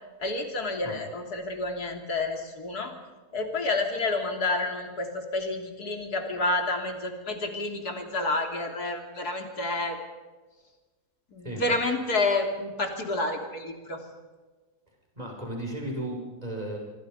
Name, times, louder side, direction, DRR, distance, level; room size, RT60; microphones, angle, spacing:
voice 1, 0.2-2.9 3.3-10.0 11.3-14.0, left 2 dB, 75° left, 3 dB, 3.6 m, -29 dB
voice 2, 15.2-16.8, right 1 dB, 25° right, 0 dB, 6.9 m, -34 dB
26.5 x 24.0 x 5.5 m, 1.3 s
omnidirectional pair, 1.7 m